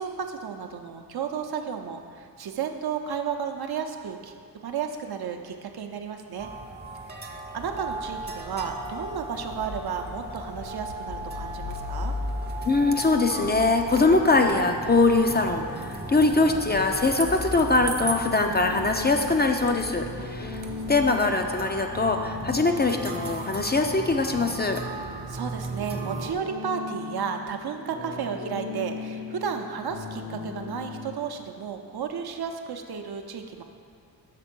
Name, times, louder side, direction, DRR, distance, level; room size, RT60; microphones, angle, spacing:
voice 1, 0.0-4.3 4.6-6.5 7.1-12.1 19.9-20.3 25.3-33.6, right 7 dB, 65° right, 5 dB, 0.7 m, -33 dB
sound 1, 6.4-26.3, right 2 dB, 25° right, 0.6 m, -37 dB
sound 2, 7.6-21.0, left 2 dB, 70° left, 1.4 m, -40 dB
voice 2, 12.7-20.6 20.9-24.8, left 3 dB, 25° left, 4 dB, 0.4 m, -22 dB
sound 3, 18.5-31.2, left 4 dB, 90° left, 0.8 m, -39 dB
6.7 x 3.6 x 6.0 m, 2.3 s
cardioid pair, 75°, 40 cm